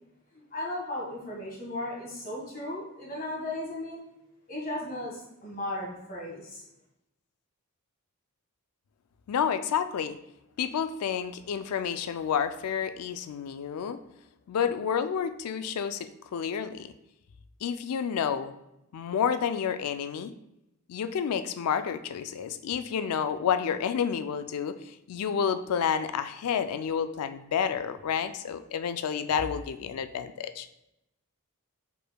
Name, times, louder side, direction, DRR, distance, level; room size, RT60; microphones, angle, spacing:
voice 1, 0.3-4.0 4.5-6.6, left 1 dB, 40° left, -4 dB, 1.6 m, -36 dB
voice 2, 9.3-10.2 10.6-14.0 14.5-16.9 17.6-18.5 18.9-20.3 20.9-30.7, left 7 dB, 80° left, 11 dB, 0.4 m, -30 dB
5.1 x 4.5 x 2.2 m, 0.87 s
head